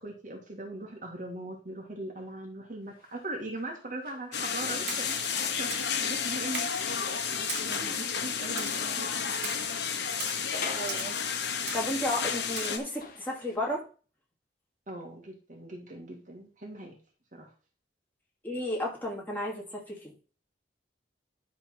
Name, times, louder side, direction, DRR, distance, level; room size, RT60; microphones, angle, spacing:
voice 1, 0.0-9.3 14.9-17.0 17.3-17.5, right 1 dB, 45° right, -1 dB, 1.9 m, -40 dB
sound 1, 2.9-8.2 8.6-11.8 12.1-13.6, left 4 dB, 50° left, 1.5 m, -47 dB
sound 2, 4.3-12.8, left 6 dB, 70° left, 1.1 m, -32 dB
Splash splatter, 4.9-5.3 5.7-6.0 6.5-6.9 7.5-7.9 8.6-8.9 9.4-9.7 10.2-10.4 10.9-11.2 11.7-12.0 12.6-12.8, right 6 dB, 65° right, 1.4 m, -40 dB
voice 2, 10.7-11.2 11.7-13.8 18.4-20.1, left 1 dB, 10° left, -3 dB, 2.6 m, -33 dB
11.0 x 3.9 x 5.7 m, 0.38 s
head